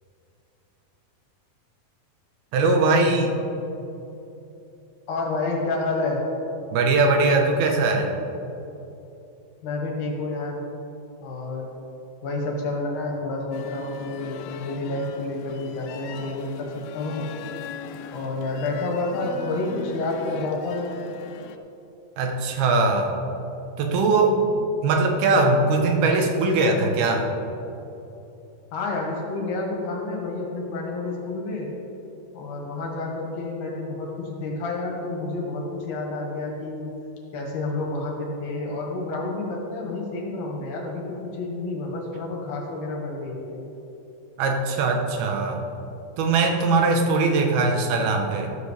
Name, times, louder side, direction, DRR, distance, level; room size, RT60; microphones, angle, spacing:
voice 1, 2.5-3.4 6.7-8.1 22.2-23.1 23.8-24.4 24.8-27.3 44.4-45.6 46.2-48.5, right 3 dB, 85° right, 3 dB, 3.0 m, -21 dB
voice 2, 5.1-6.2 9.6-10.6 11.2-11.7 12.2-17.3 18.1-20.9 28.7-31.7 32.3-36.9 37.3-43.6, left 2 dB, 60° left, -1 dB, 2.8 m, -29 dB
sound 1, 13.5-21.6, left 8 dB, 85° left, 2.6 m, -41 dB
13.0 x 13.0 x 3.3 m, 2.9 s
omnidirectional pair, 4.3 m